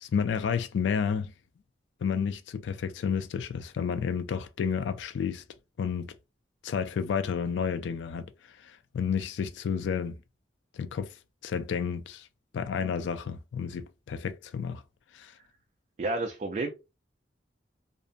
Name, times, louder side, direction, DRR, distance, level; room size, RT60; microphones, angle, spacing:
voice 1, 0.0-1.3 2.0-5.4 5.8-6.1 6.6-8.3 8.6-10.2 10.7-11.2 11.4-12.3 12.5-14.8 15.1-15.3, left 6 dB, 75° left, 0.3 m, -31 dB
voice 2, 16.0-16.7, right 2 dB, 40° right, 0.3 m, -30 dB
2.5 x 2.1 x 2.4 m
head